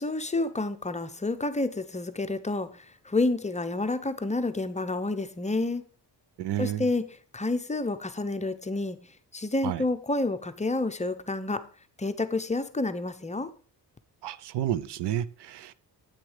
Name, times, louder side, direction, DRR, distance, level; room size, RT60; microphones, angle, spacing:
voice 1, 0.0-5.8 6.6-7.1 7.3-9.0 9.3-11.7 12.0-13.5, left 2 dB, 15° left, 0.6 m, -29 dB
voice 2, 6.4-6.9 9.6-9.8 14.2-15.7, right 11 dB, 80° right, 0.7 m, -30 dB
9.3 x 8.8 x 4.9 m
cardioid pair, 135°, 41 cm